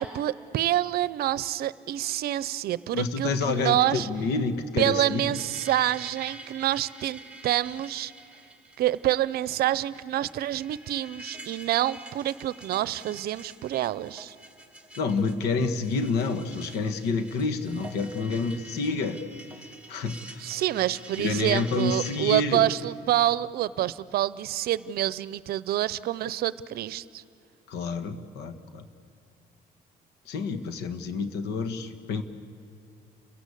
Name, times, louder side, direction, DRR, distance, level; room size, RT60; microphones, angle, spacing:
voice 1, 0.0-4.1 4.8-8.1 8.8-14.4 20.4-27.2, right 13 dB, 65° right, 18 dB, 0.7 m, -27 dB
voice 2, 2.9-5.4 15.0-19.2 19.9-20.5 21.2-22.7 27.7-28.8 30.2-32.2, left 4 dB, 80° left, 9 dB, 1.7 m, -28 dB
sound 1, 5.3-22.2, right 2 dB, 5° right, 2.6 m, -47 dB
30.0 x 16.0 x 8.5 m, 2.4 s
cardioid pair, 110°, 17 cm